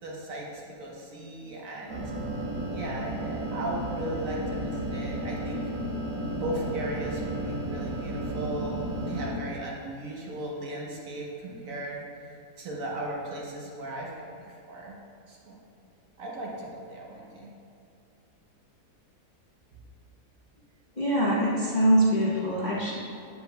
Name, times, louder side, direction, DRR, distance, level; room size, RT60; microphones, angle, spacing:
voice 1, 0.0-2.0 2.7-5.6 6.3-12.0 12.3-14.1 14.4-15.0 15.3-15.6 16.2-17.5, right 1 dB, 60° right, -3 dB, 1.3 m, -37 dB
sound 1, 1.9-9.3, right 1 dB, 90° right, 1.6 m, -33 dB
voice 2, 21.0-23.0, right 1 dB, 35° left, -7 dB, 0.8 m, -23 dB
7.5 x 7.5 x 2.3 m, 2.5 s
omnidirectional pair, 1.7 m